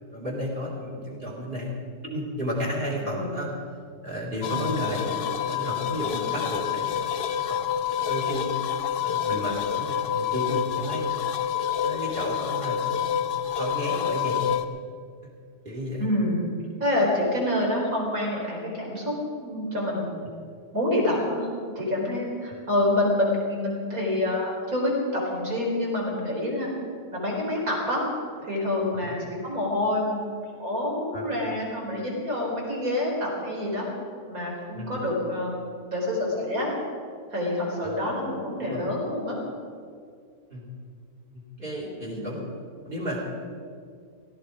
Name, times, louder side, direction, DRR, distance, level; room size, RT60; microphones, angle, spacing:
voice 1, 0.1-1.8 2.0-3.5 4.0-6.9 7.3-8.4 9.0-11.2 11.8-13.3 13.5-14.6 15.6-16.1 29.0-29.1 31.1-31.3 34.7-35.0 37.8-38.0 38.6-38.9 40.5-40.7 41.3-42.4 42.8-43.2, equal, 30° right, -3 dB, 3.9 m, -32 dB
voice 2, 3.0-3.4 16.0-16.5 16.8-20.2 20.7-21.5 21.7-26.7 27.1-28.0 28.4-30.3 30.6-33.9 34.3-35.6 35.9-36.7 37.3-39.4 42.1-42.4, left 1 dB, 60° right, -2 dB, 4.6 m, -27 dB
sound 1, 4.4-14.6, left 9 dB, 85° left, 1.3 m, -28 dB
16.5 x 15.5 x 5.0 m, 2.2 s
omnidirectional pair, 1.7 m